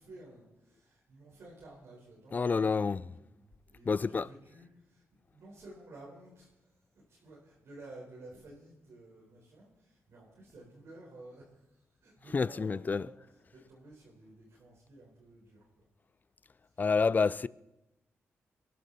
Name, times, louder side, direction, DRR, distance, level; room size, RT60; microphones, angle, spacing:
voice 1, 0.0-6.8 7.1-13.1 13.5-15.9 16.7-16.8, right 2 dB, 70° right, 4.5 m, -53 dB
voice 2, 2.3-3.1 3.9-4.3 12.3-13.1 16.8-17.5, left 5 dB, 35° left, 0.4 m, -28 dB
23.0 x 11.5 x 4.2 m
cardioid pair, 70°, 5 cm